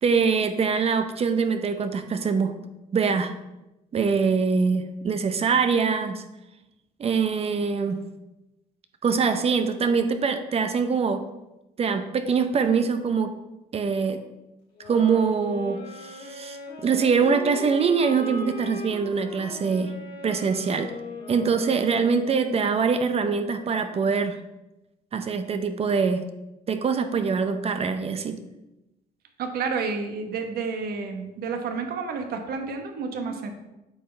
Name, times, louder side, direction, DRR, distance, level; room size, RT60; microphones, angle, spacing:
voice 1, 0.0-2.5 2.9-3.3 3.9-6.2 7.0-8.0 9.0-11.2 11.8-13.3 13.7-14.2 14.9-19.9 20.2-20.9 21.3-24.4 25.1-26.2 26.7-28.4 33.2-33.4, right 5 dB, 35° right, 8 dB, 0.6 m, -24 dB
sound 1, 14.7-22.6, left 3 dB, 90° left, 2.4 m, -39 dB
voice 2, 29.4-33.5, right 5 dB, 65° right, 6 dB, 1.1 m, -30 dB
8.5 x 5.7 x 3.3 m, 0.95 s
cardioid pair, 110°, 17 cm